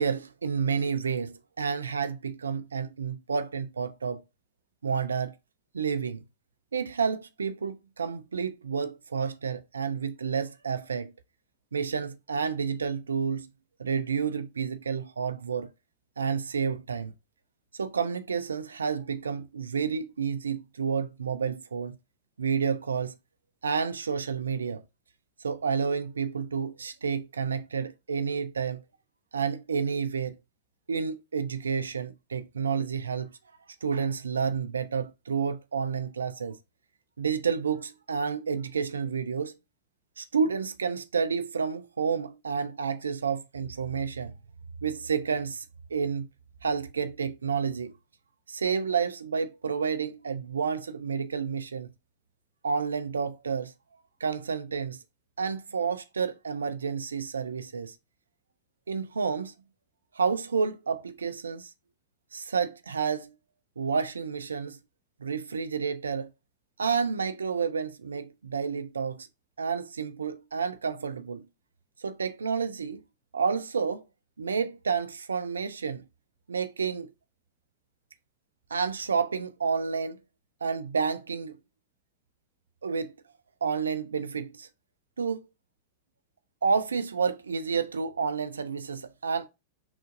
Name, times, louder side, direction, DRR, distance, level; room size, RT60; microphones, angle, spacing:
voice 1, 0.0-4.2 4.8-5.3 5.7-6.2 6.7-11.1 11.7-13.5 13.8-15.7 16.2-17.1 17.7-22.0 22.4-23.1 23.6-24.8 25.4-28.8 29.3-30.4 30.9-33.3 33.8-36.6 37.2-39.6 40.2-44.3 44.8-45.6 45.9-46.3 46.6-47.9 48.5-51.9 52.6-53.7 54.2-55.0 55.4-58.0 58.9-59.5 60.1-61.7 62.3-63.3 63.8-64.8 65.2-66.3 66.8-69.3 69.6-71.4 72.0-73.0 73.3-74.0 74.4-76.0 76.5-77.1 78.7-80.2 80.6-81.6 82.8-83.2 83.6-84.7 85.2-85.5 86.6-89.5, right 6 dB, 70° right, 0.3 m, -30 dB
5.8 x 2.5 x 2.5 m
figure-of-eight pair, 90°, 0 cm